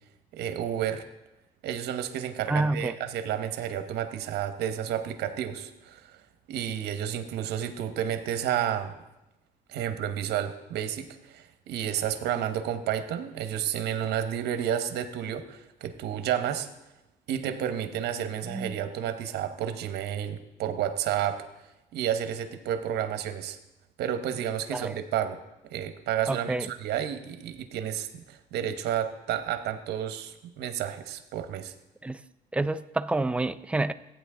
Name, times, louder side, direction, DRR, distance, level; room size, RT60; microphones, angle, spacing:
voice 1, 0.3-1.0 1.6-6.2 6.5-8.9 9.7-16.7 17.3-21.5 21.9-23.6 24.0-25.4 25.7-31.7, right 10 dB, 75° right, 10 dB, 1.0 m, -31 dB
voice 2, 2.5-2.9 18.5-18.8 24.7-25.0 26.3-26.7 32.0-32.2 32.5-33.9, right 2 dB, 5° right, 12 dB, 0.4 m, -28 dB
15.0 x 9.1 x 3.8 m, 0.95 s
cardioid pair, 110°, 17 cm